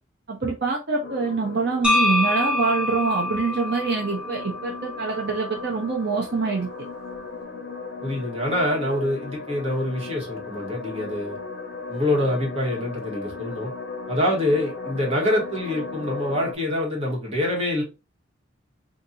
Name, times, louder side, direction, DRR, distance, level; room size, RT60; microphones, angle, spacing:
voice 1, 0.3-6.7, right 4 dB, 60° right, 0.7 m, -25 dB
sound 1, 1.0-16.6, left 4 dB, 60° left, 0.8 m, -36 dB
sound 2, 1.8-5.9, left 1 dB, 5° right, 0.9 m, -26 dB
voice 2, 8.0-11.4 11.9-13.7 14.1-17.8, left 1 dB, 35° right, 1.4 m, -25 dB
2.8 x 2.6 x 3.8 m
head